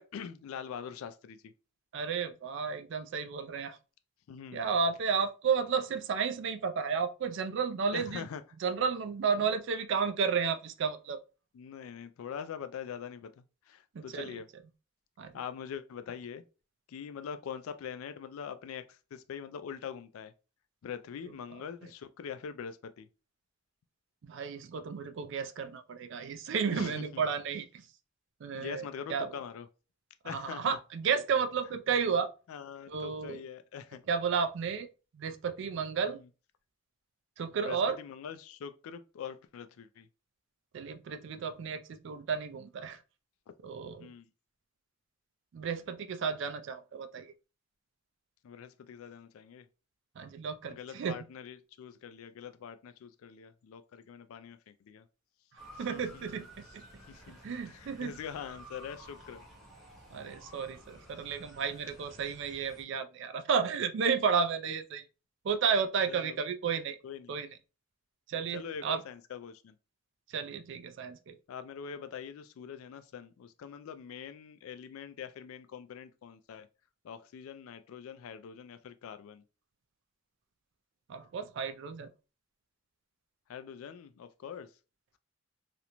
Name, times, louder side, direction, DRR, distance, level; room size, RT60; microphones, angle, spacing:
voice 1, 0.0-1.5 4.3-4.8 7.9-8.4 9.4-9.5 11.5-14.5 15.3-16.4 16.9-20.3 20.8-23.1 26.7-27.2 28.5-29.7 30.2-30.8 32.5-34.0 36.0-36.3 37.5-40.1 44.0-44.3 48.4-49.7 50.7-55.0 55.7-56.3 57.1-59.4 66.1-66.4 67.0-67.3 68.5-69.8 71.5-76.7 77.0-79.4 83.5-84.7, left 7 dB, 80° left, 0.3 m, -43 dB
voice 2, 1.9-3.8 4.5-8.2 8.6-11.2 13.9-14.3 15.2-15.3 24.2-27.7 28.4-28.8 29.1-29.3 30.2-32.3 32.9-33.4 34.1-34.9 35.1-36.2 37.4-38.0 40.7-43.0 43.6-44.1 45.5-47.3 50.2-51.2 55.8-56.8 57.4-58.1 60.1-65.0 65.4-67.0 67.3-67.5 68.3-69.0 70.3-71.4 81.1-82.1, right 6 dB, 60° right, 0.3 m, -32 dB
Motor vehicle (road) / Siren, 55.6-62.8, right 1 dB, ahead, 0.8 m, -53 dB
2.5 x 2.1 x 2.9 m
head